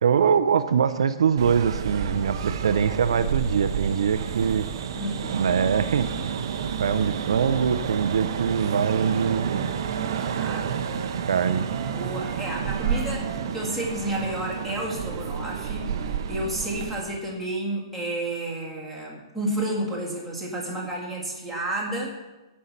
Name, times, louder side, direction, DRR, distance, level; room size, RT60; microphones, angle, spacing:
voice 1, 0.0-4.7 5.3-6.4 6.8-9.7 10.9-11.7, right 7 dB, 70° right, 11 dB, 0.6 m, -23 dB
sound 1, 1.4-17.0, right 7 dB, 45° right, 0.8 m, -30 dB
voice 2, 4.9-5.5 10.2-10.9 11.9-22.1, right 1 dB, ahead, -4 dB, 1.7 m, -31 dB
Wind instrument woodwind instrument, 9.1-12.4 12.8-16.2, right 4 dB, 20° right, 1.5 m, -45 dB
14.5 x 5.5 x 5.8 m, 1.1 s
hypercardioid pair, 175°, 3 cm